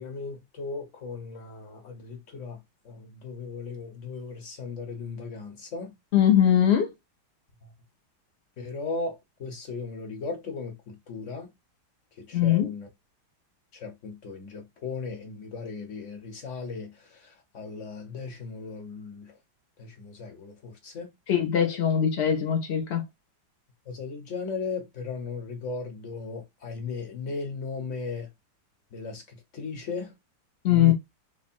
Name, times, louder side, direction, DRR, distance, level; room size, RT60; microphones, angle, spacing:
voice 1, 0.0-2.6 2.8-5.9 7.6-7.7 8.6-11.5 12.2-12.9 13.7-19.4 19.8-21.1 23.8-28.3 28.9-30.1 30.7-30.9, left 4 dB, 45° left, 1.1 m, -37 dB
voice 2, 6.1-6.9 12.3-12.7 21.3-23.0 30.6-30.9, left 10 dB, 70° left, 0.6 m, -21 dB
3.5 x 2.1 x 4.3 m
omnidirectional pair, 2.3 m